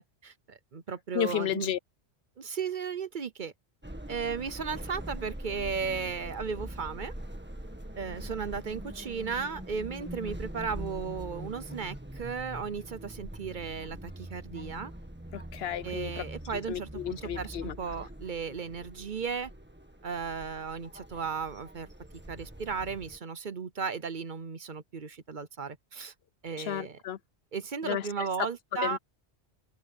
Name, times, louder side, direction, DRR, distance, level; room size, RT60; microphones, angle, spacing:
voice 1, 0.0-1.7 2.4-3.5 4.1-7.1 8.0-14.9 15.8-19.5 20.0-21.9 22.3-26.1 26.4-27.0 27.5-29.0, right 5 dB, 50° right, 0.9 m, -35 dB
voice 2, 1.1-1.8 15.3-16.2 16.7-17.8 26.7-27.2 27.8-28.0 28.8-29.0, left 10 dB, 70° left, 0.9 m, -32 dB
sound 1, 3.8-23.2, right 1 dB, 10° right, 1.7 m, -43 dB
open air
omnidirectional pair, 1.1 m